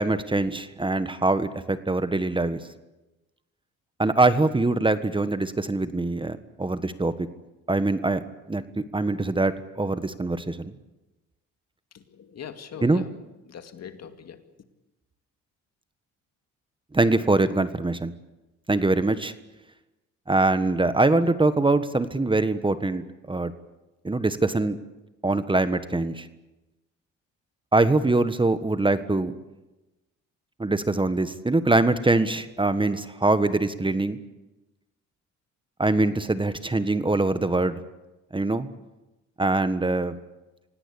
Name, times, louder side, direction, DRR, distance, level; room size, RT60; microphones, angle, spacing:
voice 1, 0.0-2.6 4.0-7.3 7.7-8.2 8.5-8.6 8.9-9.5 9.8-10.7 12.8-13.0 16.9-18.1 18.7-19.3 20.3-23.5 24.0-24.8 25.2-26.2 27.7-29.3 30.6-34.2 35.8-37.8 38.3-38.7 39.4-40.1, right 2 dB, 15° right, 12 dB, 1.5 m, -23 dB
voice 2, 11.9-13.1 13.5-14.4, left 8 dB, 55° left, 8 dB, 2.4 m, -41 dB
26.5 x 18.0 x 8.6 m, 1.0 s
cardioid pair, 90°, 30 cm